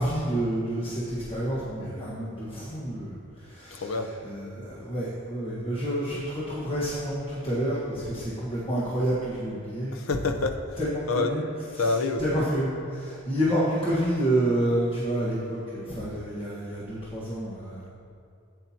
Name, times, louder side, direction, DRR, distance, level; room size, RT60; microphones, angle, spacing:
voice 1, 0.0-3.9 4.2-10.0 10.8-11.4 11.8-11.9 12.2-17.9, right 1 dB, 25° left, -9 dB, 1.5 m, -29 dB
voice 2, 3.7-4.1 9.9-10.8 11.1-11.4 11.8-12.2, left 3 dB, 75° left, 5 dB, 0.8 m, -27 dB
14.0 x 8.9 x 2.9 m, 2.4 s
head